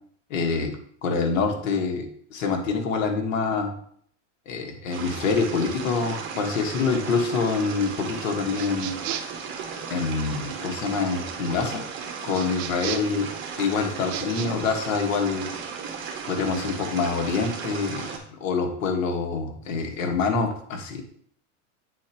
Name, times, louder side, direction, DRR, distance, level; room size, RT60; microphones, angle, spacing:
voice 1, 0.3-0.7 1.0-3.7 4.5-9.0 9.9-11.9 12.2-13.3 13.6-15.5 16.3-21.0, left 4 dB, 85° left, 3 dB, 1.6 m, -26 dB
sound 1, 4.9-18.2, right 6 dB, 30° right, 1.3 m, -35 dB
sound 2, 8.5-9.4 12.3-13.2 14.0-14.5, right 11 dB, 55° right, 0.7 m, -34 dB
8.7 x 4.3 x 3.0 m, 0.62 s
supercardioid pair, 135°, 38 cm